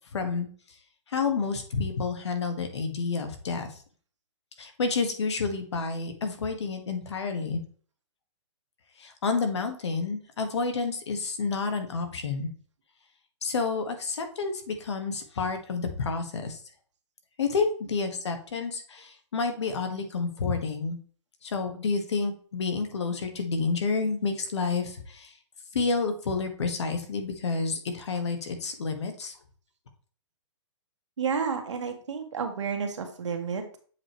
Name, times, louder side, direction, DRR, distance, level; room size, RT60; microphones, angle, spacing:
voice 1, 0.1-0.5 1.1-3.7 4.6-7.6 9.0-12.5 13.4-16.6 17.4-21.0 21.4-25.3 25.7-29.4, left 4 dB, 65° left, 6 dB, 1.6 m, -29 dB
voice 2, 31.2-33.8, right 6 dB, 75° right, 5 dB, 1.5 m, -31 dB
7.5 x 4.9 x 3.2 m, 0.43 s
hypercardioid pair, 180°, 15 cm